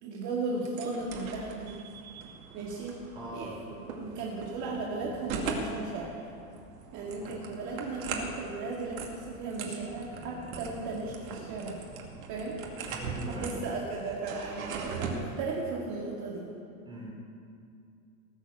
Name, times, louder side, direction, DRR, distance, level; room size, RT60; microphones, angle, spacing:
voice 1, 0.0-1.8 2.5-3.0 3.3-6.2 6.9-11.8 12.3-12.6 13.2-16.5, right 3 dB, 40° right, -3 dB, 2.1 m, -36 dB
sound 1, 0.6-15.2, right 4 dB, 70° right, 2.4 m, -40 dB
voice 2, 3.2-3.6 7.2-7.4 12.9-13.8 16.9-17.1, equal, 10° right, -3 dB, 3.6 m, -42 dB
18.0 x 7.1 x 7.6 m, 2.4 s
supercardioid pair, 135°, 43 cm